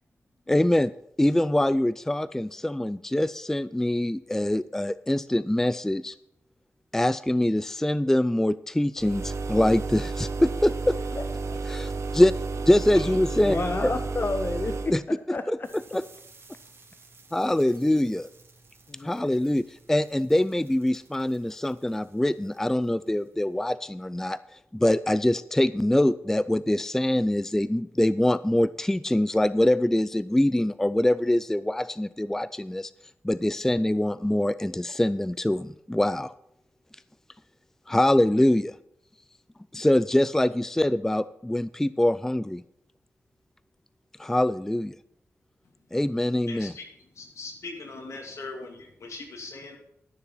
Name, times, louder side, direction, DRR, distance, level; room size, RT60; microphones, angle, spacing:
voice 1, 0.5-0.9 1.2-6.1 6.9-11.0 11.7-12.3 12.7-13.6 13.8-13.9 14.9-15.0 15.5-15.6 17.3-18.3 19.0-24.4 24.7-32.9 33.2-36.3 37.9-38.7 39.7-42.6 44.2-45.0 45.9-46.7, left 1 dB, 10° left, 16 dB, 0.3 m, -24 dB
sound 1, 9.0-15.0, right 4 dB, 80° right, 1.0 m, -32 dB
voice 2, 11.1-11.6 13.5-15.7 18.9-19.1, left 3 dB, 40° left, 9 dB, 0.7 m, -31 dB
voice 3, 12.9-14.0 45.6-45.9 46.5-49.8, left 3 dB, 80° left, 2 dB, 2.4 m, -40 dB
sound 2, 15.6-23.5, right 3 dB, 55° right, 2.5 m, -56 dB
12.5 x 6.9 x 5.5 m, 0.77 s
cardioid pair, 70°, 5 cm